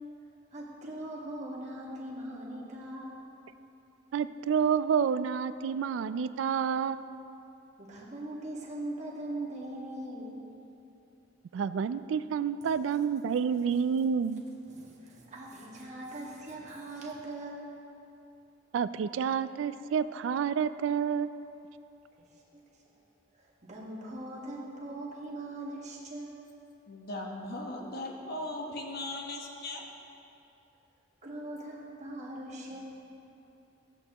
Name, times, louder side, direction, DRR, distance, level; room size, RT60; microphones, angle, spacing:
voice 1, 0.5-3.2 7.8-10.3 14.7-17.7 22.3-22.8 23.3-26.4 31.2-32.8, right 1 dB, 40° right, -4 dB, 1.5 m, -41 dB
voice 2, 4.1-7.0 11.5-14.4 18.7-21.3, right 7 dB, 75° right, 14 dB, 0.3 m, -29 dB
voice 3, 26.9-29.8, left 1 dB, 55° left, 0 dB, 1.1 m, -38 dB
14.5 x 8.2 x 2.9 m, 2.9 s
head